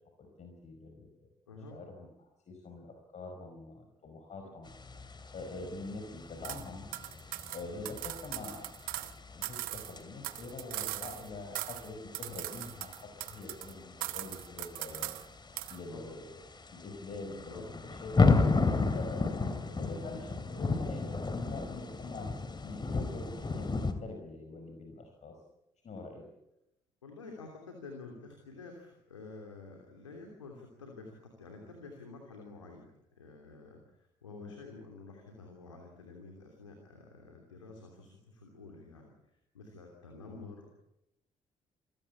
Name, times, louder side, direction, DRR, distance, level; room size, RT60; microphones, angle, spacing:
voice 1, 0.2-1.3 1.7-2.1 2.5-4.7 5.3-6.9 7.5-8.6 8.9-9.1 9.3-15.1 15.7-16.4 16.7-18.4 18.9-19.4 19.8-25.4 25.8-26.3 34.4-34.5 40.3-40.5, left 3 dB, 45° left, 3 dB, 5.0 m, -44 dB
voice 2, 1.5-1.8 15.5-16.2 17.5-17.6 19.4-19.5 27.0-32.9 33.2-40.8, left 3 dB, 85° left, 2 dB, 3.0 m, -50 dB
sound 1, 4.7-23.9, left 3 dB, 30° left, 2.9 m, -34 dB
sound 2, 6.4-6.6 6.9-9.1 9.4-11.3 11.6-11.9 12.1-13.7 14.0-15.3 15.6-15.8, right 19 dB, 65° right, 0.9 m, -40 dB
27.5 x 16.5 x 8.6 m, 0.86 s
figure-of-eight pair, 45°, 16 cm